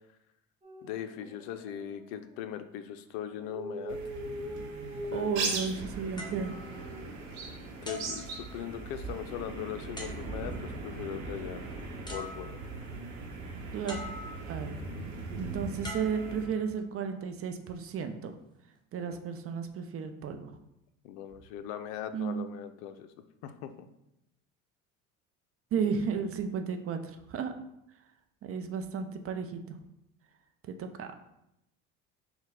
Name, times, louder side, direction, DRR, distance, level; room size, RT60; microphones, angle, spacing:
sound 1, 0.6-2.4 3.3-7.0, right 1 dB, 15° right, 0.9 m, -42 dB
voice 1, 0.8-4.0 5.1-5.8 7.8-11.7 12.1-12.6 19.0-19.2 21.0-23.1 23.4-23.9, left 10 dB, 65° left, 9 dB, 0.5 m, -40 dB
sound 2, 3.9-16.4, right 3 dB, 85° right, 0.9 m, -39 dB
voice 2, 5.1-6.6 13.7-14.0 14.5-14.9 15.4-18.3 18.9-20.5 22.1-22.5 25.7-27.5 28.4-29.6 30.7-31.1, right 6 dB, 35° right, 7 dB, 0.5 m, -33 dB
sound 3, 6.2-7.4 7.8-9.0 10.0-10.7 11.7-11.8 12.1-12.9 13.9-14.7 15.8-16.9 17.7-17.9, left 1 dB, 10° left, 1.0 m, -45 dB
4.1 x 2.2 x 3.9 m, 0.83 s
hypercardioid pair, 65°, 40 cm